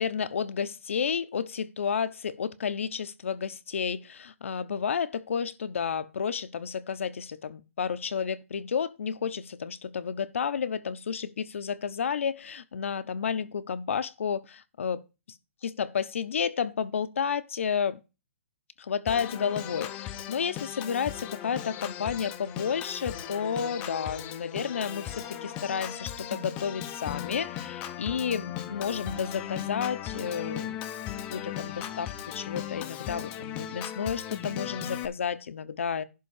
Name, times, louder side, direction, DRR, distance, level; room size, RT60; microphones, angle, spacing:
voice 1, 0.0-15.0 15.6-18.0 18.8-30.8 31.3-36.0, left 7 dB, 70° left, 0.9 m, -31 dB
Organ, 19.1-35.1, left 11 dB, 15° left, 0.7 m, -37 dB
11.5 x 3.8 x 7.1 m
hypercardioid pair, 170°, 7 cm